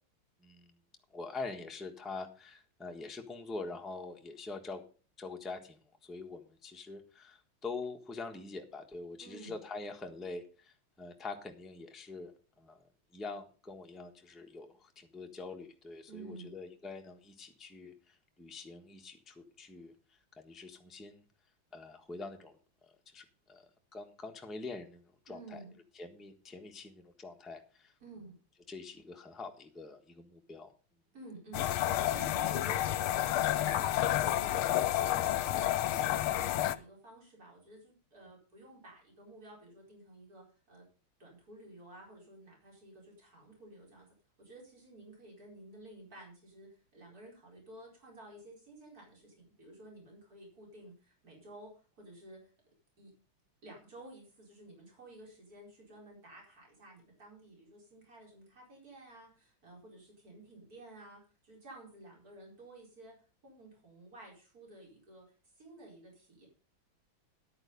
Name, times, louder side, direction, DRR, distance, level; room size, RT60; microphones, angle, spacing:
voice 1, 0.4-0.7 1.1-4.8 5.2-12.8 13.1-19.9 20.4-21.2 21.7-22.6 23.1-23.6 23.9-25.6 25.9-27.9 28.7-30.7, left 3 dB, ahead, 3 dB, 1.0 m, -45 dB
voice 2, 9.2-9.6 16.1-16.5 25.3-25.8 28.0-28.3 31.1-40.8 41.2-44.1 44.4-52.5 53.0-53.1 53.6-63.1 63.4-65.2 65.6-66.5, right 2 dB, 40° right, -2 dB, 5.0 m, -52 dB
sound 1, 31.5-36.8, left 13 dB, 75° left, 1.5 m, -30 dB
11.0 x 9.2 x 5.3 m, 0.37 s
omnidirectional pair, 2.4 m